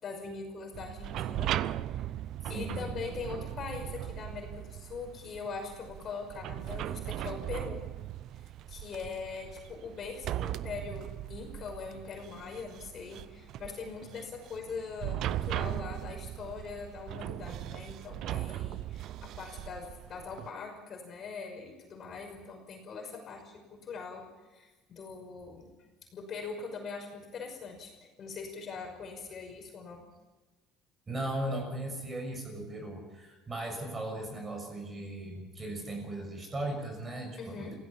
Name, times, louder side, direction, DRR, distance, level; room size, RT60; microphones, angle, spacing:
voice 1, 0.0-1.5 1.9-2.1 2.5-7.8 8.7-24.2 24.5-25.7 26.1-27.9 28.2-30.0 37.4-37.7, left 5 dB, 35° left, 3 dB, 5.7 m, -42 dB
sound 1, 0.7-20.5, right 13 dB, 55° right, 0.7 m, -38 dB
voice 2, 2.4-2.8 31.1-37.7, right 1 dB, 20° right, 4 dB, 6.4 m, -37 dB
27.5 x 17.0 x 7.2 m, 1.2 s
cardioid pair, 150°, 0 cm